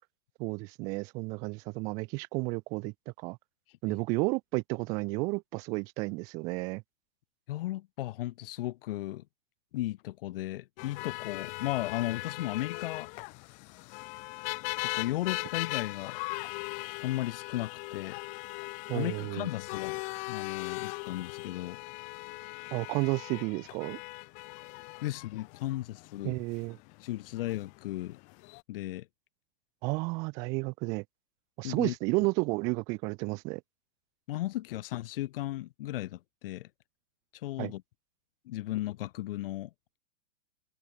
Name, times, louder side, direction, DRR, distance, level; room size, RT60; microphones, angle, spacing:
voice 1, 0.4-3.4 3.8-6.8 18.9-19.5 22.7-24.0 26.2-26.8 29.8-31.0 31.6-33.6 37.6-37.7, right 28 dB, 10° right, 0.4 m, -32 dB
voice 2, 7.5-9.2 9.7-13.1 14.9-16.2 17.0-18.2 18.9-20.0 20.3-21.8 25.0-26.4 27.0-28.2 28.7-29.1 31.6-31.9 34.3-36.7 37.4-37.8 38.5-39.7, left 15 dB, 50° left, 3.7 m, -35 dB
sound 1, 10.8-28.6, left 32 dB, 20° left, 0.7 m, -39 dB
supercardioid pair, 170°, 36 cm